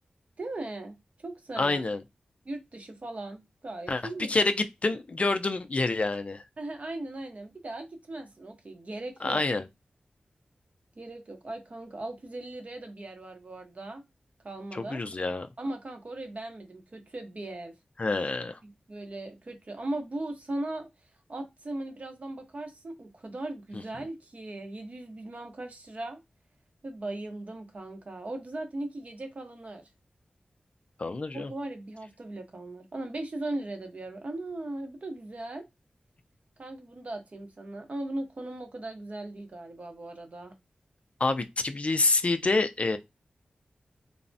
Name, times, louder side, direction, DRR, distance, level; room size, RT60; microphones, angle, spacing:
voice 1, 0.4-0.9 1.2-1.8 2.4-4.3 6.6-9.4 11.0-14.0 14.4-15.0 15.6-17.7 18.6-20.9 21.3-26.2 26.8-29.8 31.3-35.7 36.6-40.5, right 2 dB, 50° right, 0.7 m, -38 dB
voice 2, 1.6-2.0 3.9-6.4 9.2-9.6 14.7-15.5 18.0-18.6 23.7-23.8 31.0-31.5 41.2-43.0, left 3 dB, 45° left, 0.3 m, -27 dB
3.3 x 2.0 x 2.6 m
cardioid pair, 55°, 3 cm